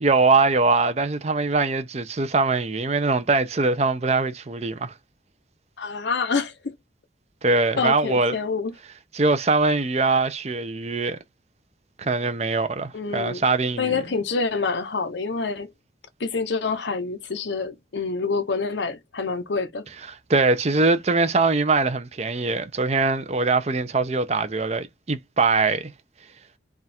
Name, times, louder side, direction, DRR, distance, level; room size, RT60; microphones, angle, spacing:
voice 1, 0.0-4.9 7.4-8.4 9.1-11.2 12.0-14.0 20.1-25.9, right 3 dB, 35° right, 0.6 m, -22 dB
voice 2, 5.8-6.7 7.8-8.7 12.9-13.4 13.8-15.7 16.2-19.8, left 4 dB, 85° left, 0.8 m, -27 dB
3.5 x 2.4 x 4.2 m
head